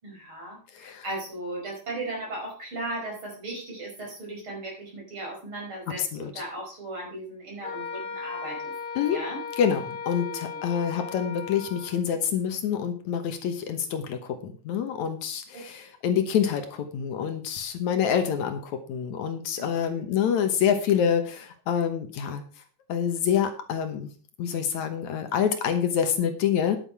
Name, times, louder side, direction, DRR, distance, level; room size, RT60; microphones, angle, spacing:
voice 1, 0.0-8.7 9.1-9.4 10.1-10.4 19.8-20.1, right 2 dB, 40° right, -2 dB, 5.8 m, -37 dB
voice 2, 0.7-1.0 6.0-6.3 9.0-9.2 9.6-22.4 22.9-24.1 24.4-26.8, left 8 dB, 75° left, 7 dB, 2.5 m, -27 dB
Wind instrument woodwind instrument, 7.6-12.0, left 5 dB, 50° left, 4.4 m, -37 dB
10.5 x 9.7 x 4.8 m, 0.40 s
omnidirectional pair, 3.5 m